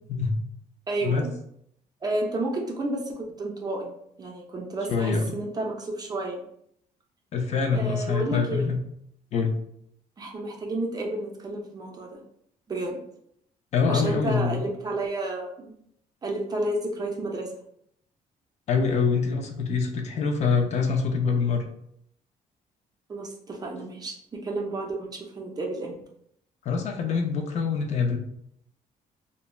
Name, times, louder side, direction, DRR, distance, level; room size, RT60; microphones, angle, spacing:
voice 1, 0.1-0.4 1.0-1.3 4.9-5.2 7.3-8.8 9.3-9.5 13.7-14.7 18.7-21.6 26.6-28.2, left 5 dB, 50° left, 3 dB, 0.4 m, -25 dB
voice 2, 0.9-1.3 2.0-3.9 4.2-6.4 7.7-8.7 10.2-12.2 12.7-13.0 13.9-15.7 16.2-17.5 23.1-25.9, right 2 dB, 25° right, 1 dB, 0.4 m, -31 dB
3.1 x 2.1 x 2.3 m, 0.71 s
cardioid pair, 140°, 15 cm